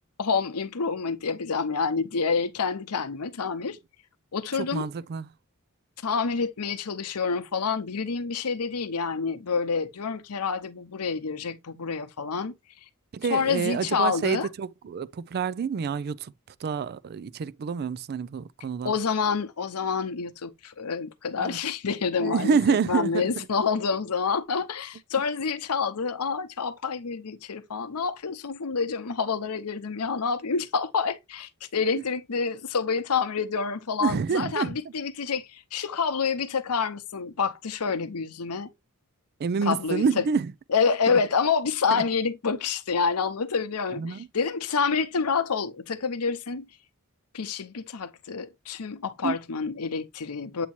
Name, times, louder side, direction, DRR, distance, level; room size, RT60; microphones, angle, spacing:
voice 1, 0.2-3.8 4.3-4.9 6.0-12.5 13.3-14.5 18.8-38.7 39.6-40.2 40.7-46.7 47.3-50.7, left 5 dB, 85° left, 0.8 m, -28 dB
voice 2, 4.5-5.3 13.1-16.3 16.6-18.9 21.4-21.6 22.2-23.5 34.0-34.9 39.4-40.5 41.1-41.2 41.9-42.0 44.0-44.3 49.2-49.4, right 5 dB, 45° right, 0.3 m, -28 dB
8.4 x 2.8 x 4.4 m
head